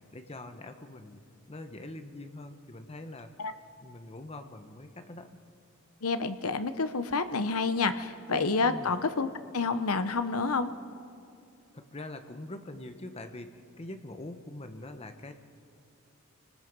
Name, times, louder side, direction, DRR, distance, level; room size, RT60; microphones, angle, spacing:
voice 1, 0.1-1.2 1.5-3.3 3.8-5.4 8.6-8.9 11.7-15.3, left 2 dB, 30° left, 7 dB, 1.1 m, -43 dB
voice 2, 6.0-9.3 9.5-10.7, left 4 dB, 85° left, 10 dB, 0.9 m, -28 dB
30.0 x 19.0 x 5.4 m, 2.6 s
head